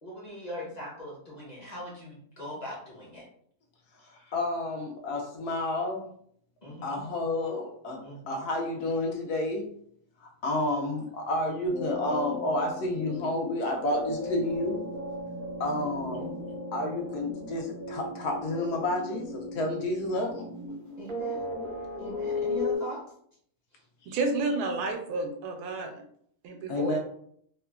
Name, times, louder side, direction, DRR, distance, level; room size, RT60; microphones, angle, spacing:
voice 1, 0.0-3.2 4.1-4.3 6.6-7.0 8.0-8.3 15.9-16.3 21.0-21.5 22.0-23.0 23.7-23.8, equal, 40° left, -5 dB, 0.7 m, -41 dB
voice 2, 4.3-6.1 6.8-8.0 8.3-9.7 10.2-14.8 15.6-16.4 16.7-20.5 26.7-27.0, left 1 dB, 75° left, 2 dB, 1.1 m, -30 dB
sound 1, 11.7-22.8, left 2 dB, 60° right, 0.6 m, -36 dB
voice 3, 24.1-26.0 26.4-27.0, right 3 dB, 80° right, 4 dB, 1.1 m, -30 dB
3.0 x 2.1 x 2.3 m, 0.64 s
omnidirectional pair, 1.7 m